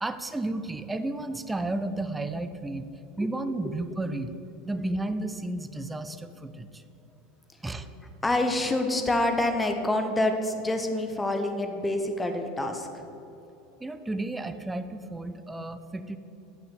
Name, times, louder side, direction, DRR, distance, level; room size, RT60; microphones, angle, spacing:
voice 1, 0.0-2.9 3.2-4.4 4.6-6.8 7.6-7.9 13.8-16.2, right 2 dB, 10° right, 10 dB, 0.6 m, -32 dB
voice 2, 8.2-12.9, left 1 dB, 10° left, 5 dB, 1.1 m, -26 dB
8.8 x 6.2 x 8.2 m, 3.0 s
figure-of-eight pair, 80°, 0 cm